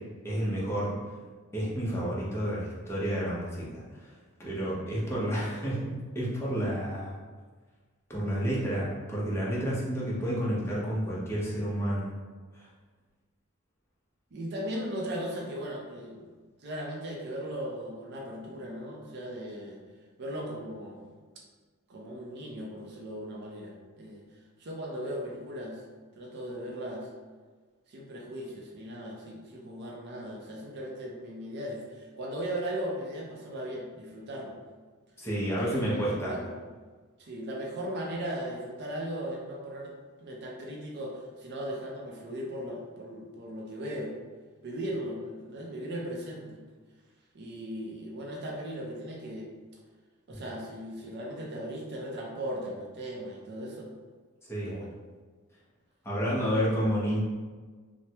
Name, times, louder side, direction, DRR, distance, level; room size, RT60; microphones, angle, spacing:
voice 1, 0.2-0.9 1.5-4.1 4.4-7.2 8.1-12.1 12.5-12.7 35.2-36.4 50.3-50.4 54.4-54.8 56.0-57.2, equal, 10° left, -7 dB, 0.7 m, -30 dB
voice 2, 14.3-16.2 16.6-19.8 20.2-21.1 21.9-24.3 24.6-25.8 26.2-27.1 27.9-34.6 35.5-36.5 37.2-39.9 40.2-44.1 44.6-46.6 47.3-49.5 50.3-53.9 54.7-54.9, equal, 50° right, -2 dB, 0.5 m, -37 dB
3.2 x 2.1 x 2.8 m, 1.4 s
head